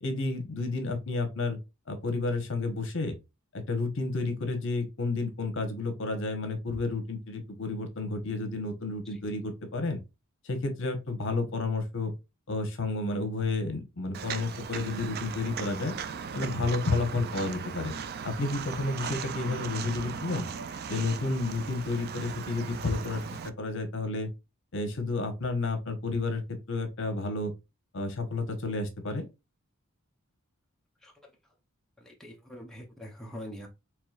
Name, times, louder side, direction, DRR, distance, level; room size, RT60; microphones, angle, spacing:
voice 1, 0.0-1.6 1.9-3.2 3.5-10.0 10.4-12.1 12.5-15.9 16.3-17.9 18.2-20.5 20.9-23.2 23.6-24.3 24.7-26.4 26.7-27.5 27.9-29.3, left 3 dB, 60° left, 1.0 m, -31 dB
Walk footsteps, 14.1-23.5, right 6 dB, 45° right, 0.4 m, -38 dB
voice 2, 32.0-33.7, equal, ahead, 0.7 m, -44 dB
4.8 x 3.1 x 2.3 m
head